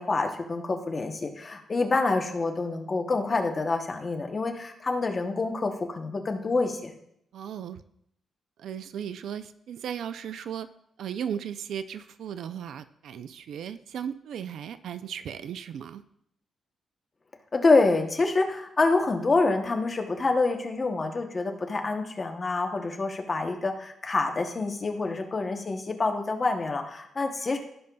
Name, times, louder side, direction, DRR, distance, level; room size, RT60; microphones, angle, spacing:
voice 1, 0.0-6.9 17.5-27.6, left 3 dB, 25° left, 4 dB, 0.8 m, -27 dB
voice 2, 7.3-7.8 8.6-10.7 11.0-16.0, right 8 dB, 70° right, 12 dB, 0.4 m, -36 dB
15.5 x 5.4 x 2.3 m, 0.75 s
wide cardioid pair, 175°, 0 cm